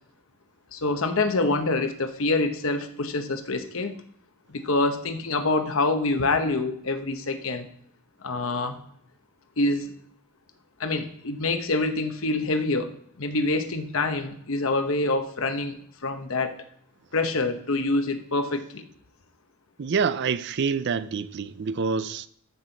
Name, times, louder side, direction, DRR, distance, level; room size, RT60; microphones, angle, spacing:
voice 1, 0.7-3.9 4.5-7.7 8.2-8.8 9.6-9.9 10.8-15.8 16.0-16.6 17.1-18.8, left 2 dB, 65° left, 0.9 m, -26 dB
voice 2, 19.8-22.3, right 5 dB, 55° right, 0.4 m, -27 dB
13.5 x 6.2 x 4.0 m
head